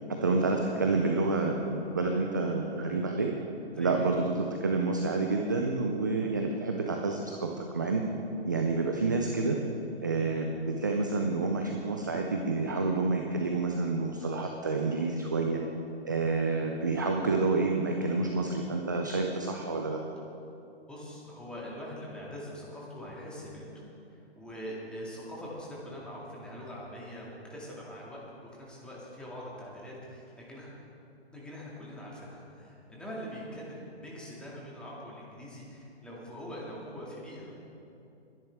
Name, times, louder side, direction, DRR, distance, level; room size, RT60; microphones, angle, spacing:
voice 1, 0.1-3.3 3.8-8.1 8.5-9.6 10.0-15.6 16.0-20.0, right 3 dB, 20° right, 2 dB, 0.3 m, -29 dB
voice 2, 3.7-4.1 10.2-10.3 16.9-17.0 20.9-23.7 24.1-30.7 31.3-37.5, equal, 5° left, -5 dB, 2.1 m, -43 dB
21.0 x 10.5 x 3.5 m, 2.7 s
hypercardioid pair, 145°, 33 cm